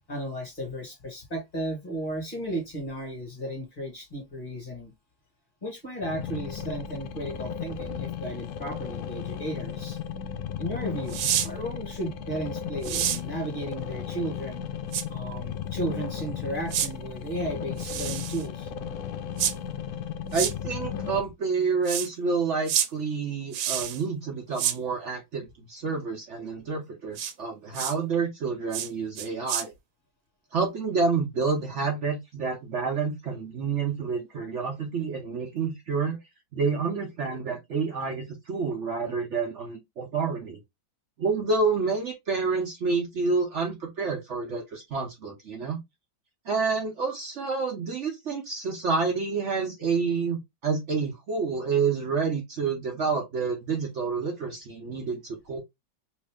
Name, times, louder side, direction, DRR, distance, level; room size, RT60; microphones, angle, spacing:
voice 1, 0.1-4.9 5.6-10.0 10.6-14.7 15.1-18.7, right 1 dB, 30° left, 1.3 m, -34 dB
sound 1, 6.0-21.2, left 8 dB, 75° left, 0.9 m, -35 dB
sound 2, 11.1-11.5 12.8-13.2 14.9-15.0 16.7-16.9 17.8-18.4 19.4-19.5 20.3-20.5 21.9-22.1 22.7-22.9 23.5-24.0 24.6-24.8 27.2-27.3 27.7-27.9 28.7-28.9 29.2-29.6, right 10 dB, 85° right, 1.3 m, -28 dB
voice 2, 20.3-29.7 30.5-36.2 36.5-40.6 41.2-45.8 46.5-55.6, right 4 dB, 60° right, 0.7 m, -28 dB
3.1 x 2.6 x 3.4 m
omnidirectional pair, 2.1 m